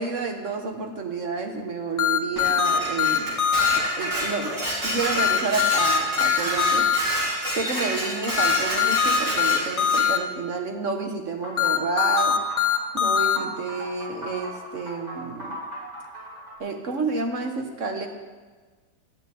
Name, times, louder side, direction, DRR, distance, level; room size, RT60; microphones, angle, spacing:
voice 1, 0.0-3.4 3.7-4.5 4.8-6.9 7.5-12.4 12.9-15.6 16.6-18.1, right 4 dB, 45° right, 4 dB, 1.5 m, -30 dB
sound 1, 2.0-3.8 5.2-7.0 8.4-10.2 11.6-13.4, left 8 dB, 45° left, 0.4 m, -21 dB
Dishes pots and pans, 2.4-10.1, right 1 dB, 85° right, 4.5 m, -28 dB
sound 2, 11.4-16.6, right 1 dB, 20° right, 4.3 m, -37 dB
12.0 x 7.2 x 9.3 m, 1.4 s
omnidirectional pair, 1.9 m